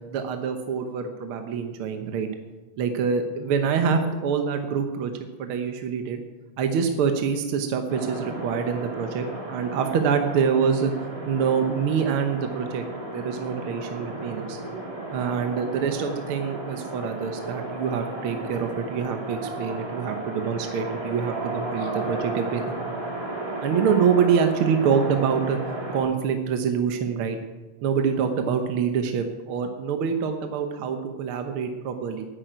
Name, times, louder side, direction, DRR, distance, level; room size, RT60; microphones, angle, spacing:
voice 1, 0.1-2.3 2.8-5.1 5.4-6.2 6.6-10.9 11.2-14.6 15.1-22.9 23.6-25.6 25.9-27.4 27.8-32.3, right 6 dB, 65° right, 6 dB, 1.4 m, -25 dB
sound 1, 7.9-26.0, right 2 dB, 15° right, 1.8 m, -34 dB
10.0 x 9.7 x 9.1 m, 1.2 s
omnidirectional pair, 3.3 m